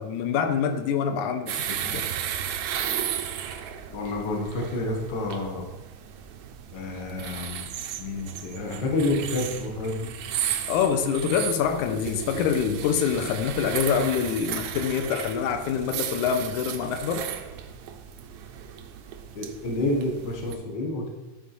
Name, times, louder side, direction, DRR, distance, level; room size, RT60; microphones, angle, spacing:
voice 1, 0.0-2.0 10.7-17.3, left 7 dB, 90° left, 7 dB, 2.1 m, -26 dB
sound 1, 1.5-20.6, right 9 dB, 85° right, 1.3 m, -34 dB
voice 2, 3.9-5.7 6.7-7.6 8.0-10.1 19.4-21.1, left 2 dB, 45° left, 0 dB, 1.6 m, -29 dB
10.5 x 4.9 x 4.0 m, 1.1 s
omnidirectional pair, 3.4 m